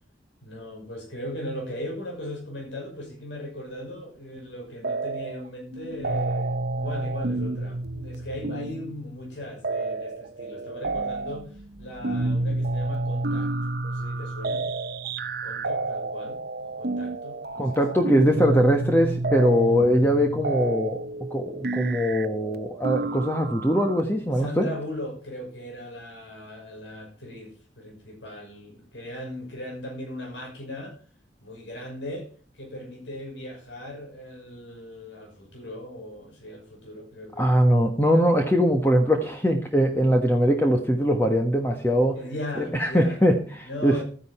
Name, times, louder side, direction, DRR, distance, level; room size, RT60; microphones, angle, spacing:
voice 1, 0.4-14.6 15.4-17.7 17.9-18.3 24.3-31.0 31.4-37.6 42.1-43.2 43.6-44.0, left 1 dB, 75° left, 5.9 m, -38 dB
sound 1, 4.8-5.5 5.7-24.0, right 2 dB, 55° right, 0.8 m, -30 dB
voice 2, 17.6-21.0 21.3-24.7 37.4-42.2 42.6-44.0, equal, 10° left, 1.3 m, -21 dB
13.5 x 10.5 x 4.3 m
head